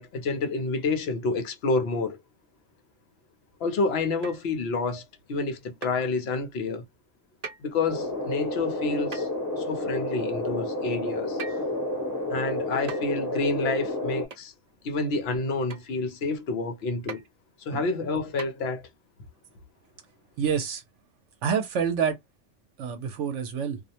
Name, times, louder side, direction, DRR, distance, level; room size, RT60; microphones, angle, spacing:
voice 1, 0.0-2.2 3.6-6.8 7.6-9.3 9.6-11.6 12.3-14.5 14.8-17.2 17.6-18.8, left 3 dB, 60° left, 0.8 m, -29 dB
sound 1, 4.2-4.5 5.8-6.0 7.4-7.7 9.1-9.4 11.4-11.7 12.9-13.2 14.3-14.5 15.7-15.9 17.1-17.3 18.4-18.5, right 4 dB, 40° right, 0.6 m, -39 dB
sound 2, 7.9-14.3, left 2 dB, 15° left, 0.9 m, -30 dB
voice 2, 20.4-20.8 21.4-22.2 22.8-23.8, right 7 dB, 75° right, 0.9 m, -27 dB
2.4 x 2.0 x 2.7 m
omnidirectional pair, 1.3 m